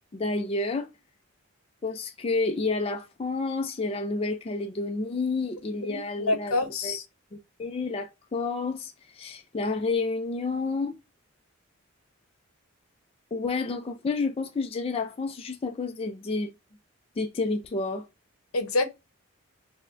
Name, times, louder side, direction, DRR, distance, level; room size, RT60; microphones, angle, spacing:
voice 1, 0.1-0.9 1.8-6.5 6.8-7.0 7.3-10.9 13.3-16.5 17.2-18.1, left 3 dB, 25° left, 0.3 m, -30 dB
voice 2, 5.9-7.0 18.5-18.9, left 2 dB, 80° left, 0.7 m, -27 dB
6.0 x 2.1 x 2.4 m
head